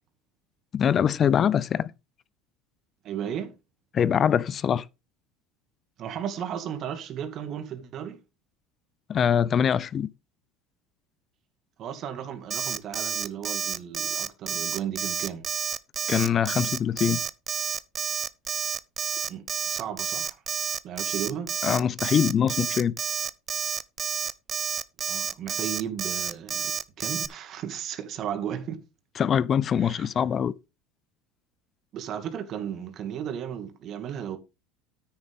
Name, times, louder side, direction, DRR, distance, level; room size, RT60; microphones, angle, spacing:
voice 1, 0.7-1.9 3.9-4.8 9.1-10.1 16.1-17.2 21.6-22.9 29.2-30.5, left 8 dB, 40° left, 0.6 m, -23 dB
voice 2, 3.0-3.5 6.0-8.2 11.8-15.5 19.3-20.4 20.8-21.5 25.1-26.7 27.0-28.8 29.8-30.1 31.9-34.4, right 9 dB, 50° right, 2.3 m, -35 dB
Alarm, 12.5-27.3, right 7 dB, 35° right, 0.7 m, -30 dB
9.6 x 8.8 x 3.7 m
supercardioid pair, 100°, 0 cm